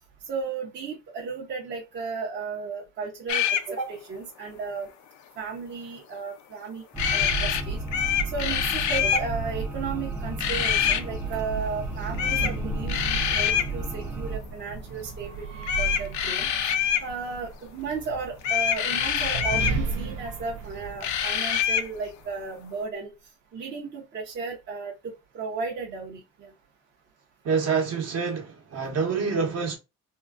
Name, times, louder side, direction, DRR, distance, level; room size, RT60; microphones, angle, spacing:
voice 1, 0.3-4.9 5.4-6.8 7.1-7.8 8.3-16.5 17.0-23.1 23.5-26.5, right 4 dB, 35° right, 0.7 m, -34 dB
sound 1, 3.3-3.7 7.0-7.6 7.9-9.3 10.4-11.0 12.2-12.5 12.9-13.7 15.6-17.1 18.4-19.8 21.0-21.9, left 9 dB, 65° left, 0.5 m, -25 dB
sound 2, 6.9-14.4, right 3 dB, 5° right, 0.4 m, -32 dB
sound 3, 10.3-22.4, right 4 dB, 85° right, 0.8 m, -36 dB
voice 2, 27.4-29.8, right 5 dB, 50° right, 1.1 m, -26 dB
3.7 x 2.1 x 2.3 m
cardioid pair, 170°, 32 cm